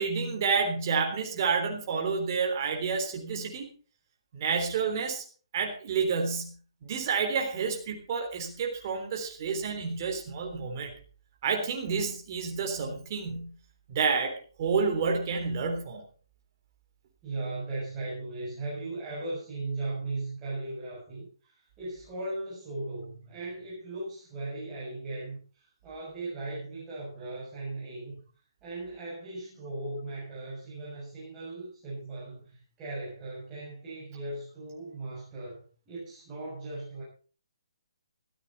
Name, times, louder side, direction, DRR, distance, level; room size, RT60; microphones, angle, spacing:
voice 1, 0.0-3.7 4.3-5.2 5.5-6.5 6.8-10.9 11.4-13.5 13.9-16.0, right 5 dB, 35° right, 2 dB, 3.6 m, -29 dB
voice 2, 17.2-28.2 28.6-37.0, right 2 dB, 15° right, -8 dB, 6.9 m, -38 dB
15.0 x 14.0 x 4.2 m, 0.40 s
hypercardioid pair, 160°, 3 cm